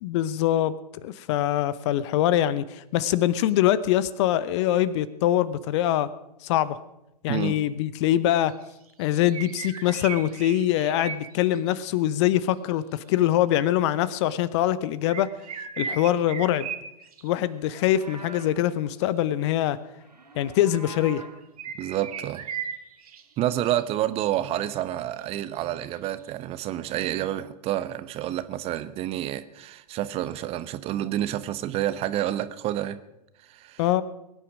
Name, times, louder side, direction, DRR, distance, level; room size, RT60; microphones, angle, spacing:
voice 1, 0.0-0.7 1.0-6.1 6.4-6.8 7.2-8.5 9.0-15.3 15.8-16.7 17.2-19.8 20.4-21.2 33.8-34.0, left 12 dB, 45° left, 17 dB, 0.9 m, -23 dB
sound 1, 8.5-8.6 9.0-11.8 13.7-13.8 15.1-17.3 21.4-23.2 23.7-23.8 24.3-24.4 24.5-24.6 24.9-25.0 25.5-26.3, right 7 dB, 65° right, 2.0 m, -37 dB
Livestock farm animals working animals, 17.6-18.7 20.0-21.5, right 3 dB, 85° right, 1.9 m, -45 dB
voice 2, 21.8-22.5 23.4-33.0 33.5-33.8, right 13 dB, 30° right, 14 dB, 0.9 m, -29 dB
22.0 x 10.0 x 6.1 m, 0.87 s
figure-of-eight pair, 105°, 21 cm